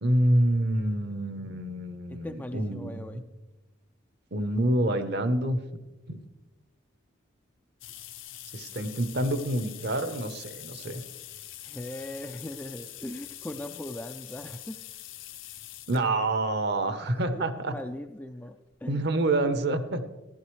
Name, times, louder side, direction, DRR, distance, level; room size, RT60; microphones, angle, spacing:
voice 1, 0.0-3.2 4.3-5.6 6.1-6.2 8.5-11.0 15.9-17.8 18.9-20.0, right 1 dB, 55° right, 10 dB, 0.9 m, -27 dB
voice 2, 2.1-3.2 11.6-14.8 17.3-19.1, left 1 dB, 10° left, 5 dB, 0.3 m, -39 dB
sound 1, 7.8-16.1 16.9-17.0 18.3-18.4 18.7-18.8 19.1-19.2, left 13 dB, 70° left, 0.7 m, -44 dB
15.0 x 12.0 x 3.2 m, 1.1 s
head